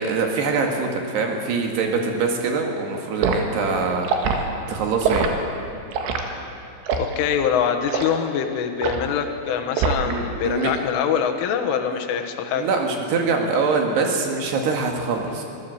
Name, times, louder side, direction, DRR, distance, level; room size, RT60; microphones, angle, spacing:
voice 1, 0.0-4.4 4.7-5.3 10.1-10.7 11.8-12.0 12.5-15.4, right 4 dB, 65° right, 2 dB, 3.7 m, -24 dB
Liquid, 3.2-3.4 4.0-4.4 5.0-5.3 5.9-6.2 6.9-7.1 7.9-8.1 8.8-9.1 9.8-10.2 10.5-10.8, right 5 dB, 80° right, 4.2 m, -23 dB
voice 2, 7.0-12.7, left 8 dB, 80° left, 5 dB, 3.9 m, -24 dB
25.5 x 16.5 x 7.8 m, 2.7 s
omnidirectional pair, 5.6 m